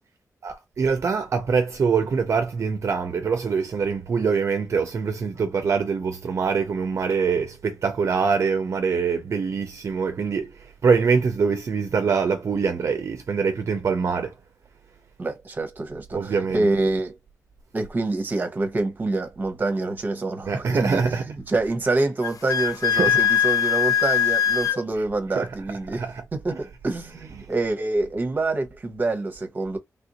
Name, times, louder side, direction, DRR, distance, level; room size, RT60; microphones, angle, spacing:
voice 1, 0.4-14.3 16.1-16.7 20.5-21.2 22.9-23.2 25.3-25.5 25.9-26.2 26.5-26.6 27.4-27.5, right 5 dB, 55° right, 0.4 m, -24 dB
voice 2, 15.2-17.2 17.7-26.0 26.3-29.8, right 2 dB, 30° right, 0.8 m, -26 dB
Wind instrument woodwind instrument, 22.2-24.8, left 8 dB, 80° left, 0.5 m, -21 dB
3.3 x 2.5 x 2.8 m
wide cardioid pair, 150°, 6 cm